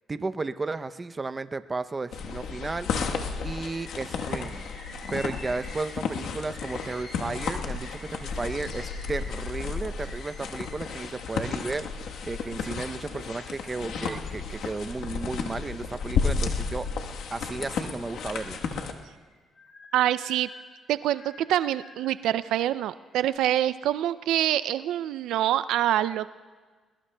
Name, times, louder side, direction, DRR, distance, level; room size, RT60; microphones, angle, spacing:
voice 1, 0.1-2.9 3.4-4.6 5.1-16.9 17.3-18.6, right 3 dB, 25° right, 11 dB, 0.6 m, -34 dB
sound 1, 2.1-18.9, left 5 dB, 80° left, 1.2 m, -33 dB
Bird, 3.7-12.6 13.1-14.1 14.6-15.6 16.1-17.4 17.9-22.2 22.9-23.4, left 2 dB, 40° left, 5.8 m, -50 dB
voice 2, 19.9-20.5 20.9-26.3, right 12 dB, 85° right, 15 dB, 0.3 m, -25 dB
22.0 x 21.5 x 2.2 m, 1.4 s
cardioid pair, 90°, 0 cm